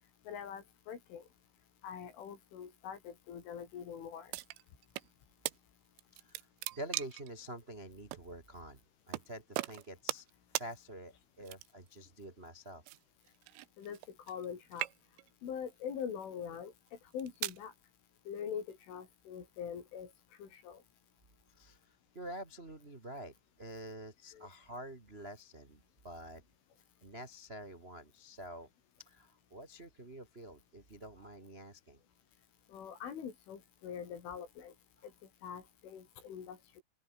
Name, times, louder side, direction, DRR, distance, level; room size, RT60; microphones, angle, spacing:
voice 1, 0.3-1.2 1.8-4.3 13.8-14.0 14.3-14.9 15.4-16.7 17.1-17.7 18.3-20.1 20.4-20.8 24.3-24.5 32.7-34.7 35.4-36.8, left 8 dB, 75° left, 6.5 m, -43 dB
sound 1, 4.3-5.1 5.5-5.6 6.0-7.3 8.1-8.2 9.1-9.3 9.6-10.3 10.6-10.7 11.4-11.9 12.9-14.5 14.7-15.3 16.0-16.3 16.9-17.6, right 20 dB, 90° right, 3.4 m, -39 dB
voice 2, 6.1-6.5 6.7-8.8 9.1-10.3 10.5-12.8 21.5-26.4 27.0-28.7 29.0-32.0, right 1 dB, 35° right, 0.9 m, -48 dB
open air
omnidirectional pair, 5.6 m